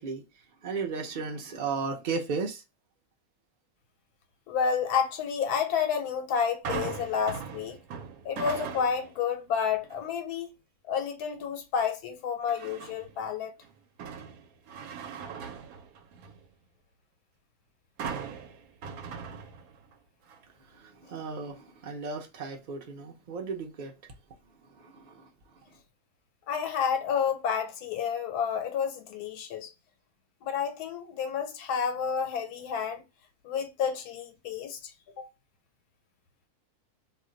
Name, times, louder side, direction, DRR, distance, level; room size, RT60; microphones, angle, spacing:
voice 1, 0.0-2.6 20.6-24.1 24.4-25.8, right 4 dB, 50° right, 0.5 m, -36 dB
voice 2, 4.5-7.8 8.2-10.5 10.9-13.5 26.5-29.7 30.4-33.0 33.4-34.9 35.2-35.3, left 7 dB, 90° left, 1.1 m, -30 dB
sound 1, 6.6-9.2 9.6-10.0 12.5-13.2 13.6-16.5 18.0-19.9 20.3-20.4, right 6 dB, 75° right, 1.0 m, -39 dB
2.5 x 2.1 x 3.7 m
omnidirectional pair, 1.6 m